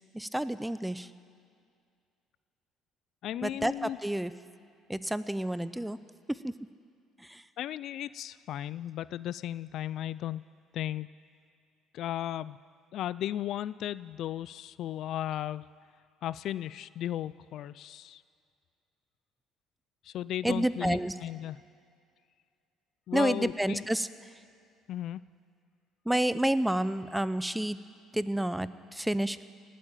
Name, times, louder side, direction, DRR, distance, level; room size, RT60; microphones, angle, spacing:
voice 1, 0.1-1.1 3.4-4.3 4.9-6.0 6.3-6.5 7.2-7.4 20.4-21.2 23.1-24.3 26.1-27.8 28.1-29.4, right 1 dB, 5° right, 15 dB, 0.6 m, -30 dB
voice 2, 3.2-4.0 7.6-10.4 10.7-11.1 11.9-12.6 12.9-15.7 16.2-18.2 20.0-21.6 23.1-23.8 24.9-25.2, left 12 dB, 65° left, 18 dB, 0.3 m, -35 dB
19.0 x 8.5 x 9.0 m, 2.3 s
supercardioid pair, 85°, 0 cm